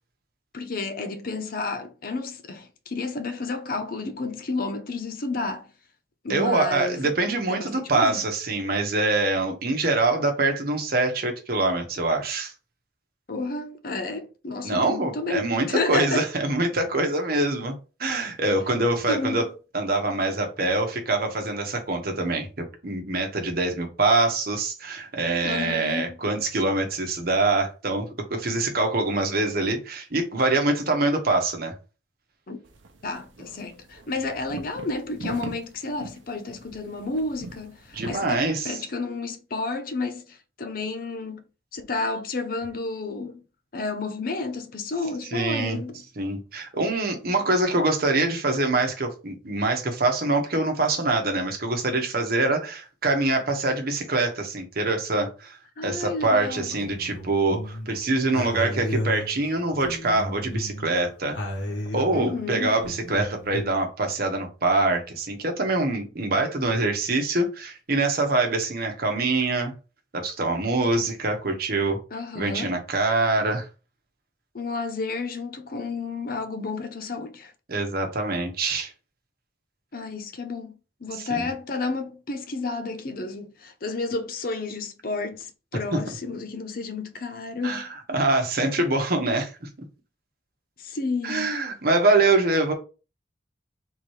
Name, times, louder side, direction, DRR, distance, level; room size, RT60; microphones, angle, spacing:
voice 1, 0.5-5.7 6.2-7.1 7.5-8.2 13.3-16.3 19.1-19.4 25.4-26.2 32.5-32.6 33.0-41.4 41.7-43.4 43.7-46.0 55.8-56.7 62.1-62.8 72.1-72.7 74.5-77.5 79.9-80.7 81.0-87.9 90.8-91.5, left 3 dB, 50° left, 0.6 m, -31 dB
voice 2, 6.3-12.5 14.6-17.7 18.0-19.4 19.7-31.7 37.9-38.8 45.3-45.8 46.2-55.6 55.8-61.4 61.9-69.7 70.1-72.0 72.3-73.7 77.7-78.9 81.1-81.5 87.6-89.7 91.2-92.7, right 2 dB, 50° right, 1.1 m, -24 dB
sound 1, 32.6-38.5, right 2 dB, 85° right, 0.8 m, -41 dB
sound 2, 56.4-57.9 58.3-60.9 61.3-63.7, equal, 75° left, 1.3 m, -33 dB
3.7 x 3.0 x 4.7 m
head